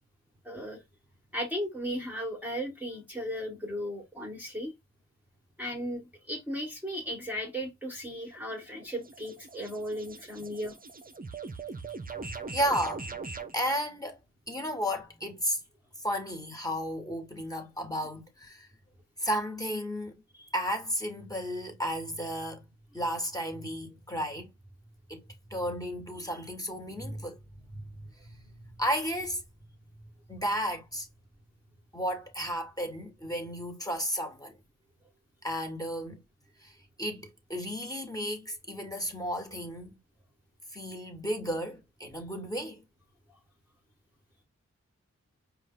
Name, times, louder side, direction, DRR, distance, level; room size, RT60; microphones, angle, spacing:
voice 1, 0.4-0.8 1.3-4.7 5.6-10.8, equal, 5° right, 1.3 m, -36 dB
sound 1, 8.1-13.6, right 4 dB, 30° right, 0.6 m, -41 dB
voice 2, 12.5-13.2 13.5-14.2 14.5-15.6 16.0-18.7 19.2-20.1 20.5-22.7 22.9-24.5 25.1-25.2 25.5-27.4 27.7-27.8 28.2-28.5 28.8-29.4 30.3-31.1 31.9-34.6 35.4-36.2 36.6-40.0 40.7-42.8, equal, 10° left, 1.4 m, -33 dB
4.9 x 2.4 x 3.7 m
wide cardioid pair, 65°, 29 cm